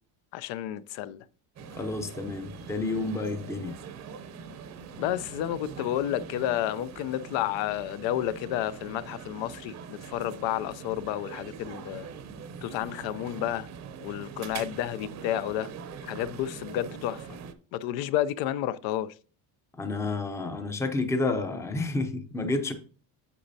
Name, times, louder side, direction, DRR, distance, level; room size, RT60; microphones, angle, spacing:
voice 1, 0.3-1.2 5.0-12.1 12.6-13.7 14.0-15.7 16.0-17.3 17.7-19.1, left 12 dB, 80° left, 0.6 m, -31 dB
sound 1, 1.6-17.5, right 6 dB, 40° right, 0.7 m, -43 dB
voice 2, 1.8-3.8 19.7-22.7, left 3 dB, 5° left, 0.5 m, -30 dB
8.3 x 7.1 x 2.7 m
cardioid pair, 165°, 44 cm